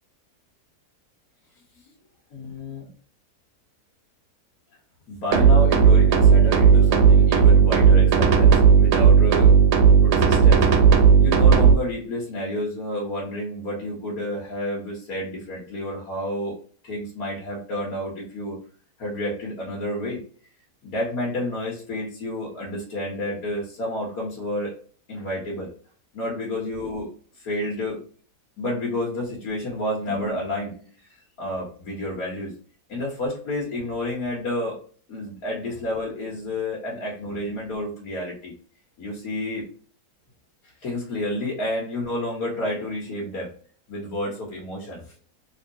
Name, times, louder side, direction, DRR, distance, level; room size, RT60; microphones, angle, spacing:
voice 1, 2.3-2.9 5.1-9.6 10.0-10.7 11.2-16.6 16.8-18.6 19.0-20.2 20.8-24.8 25.1-25.7 26.1-27.1 27.3-28.0 28.6-32.5 32.9-34.8 35.1-38.5 39.0-39.7 40.8-43.5 43.9-45.1, left 1 dB, 65° left, -4 dB, 1.5 m, -30 dB
sound 1, 5.3-11.7, right 6 dB, 85° right, 1.2 m, -15 dB
3.5 x 3.0 x 2.6 m, 0.44 s
omnidirectional pair, 1.7 m